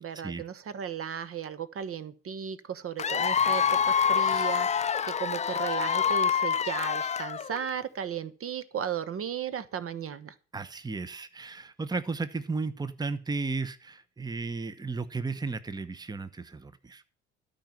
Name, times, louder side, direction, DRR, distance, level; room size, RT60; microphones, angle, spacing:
voice 1, 0.0-10.3, right 8 dB, 40° right, 15 dB, 1.1 m, -35 dB
Cheering / Applause / Crowd, 3.0-7.7, left 7 dB, 20° left, 0.5 m, -26 dB
voice 2, 10.5-17.1, right 4 dB, 10° right, 14 dB, 1.0 m, -34 dB
13.0 x 5.4 x 9.0 m, 0.38 s
hypercardioid pair, 55°, 35 cm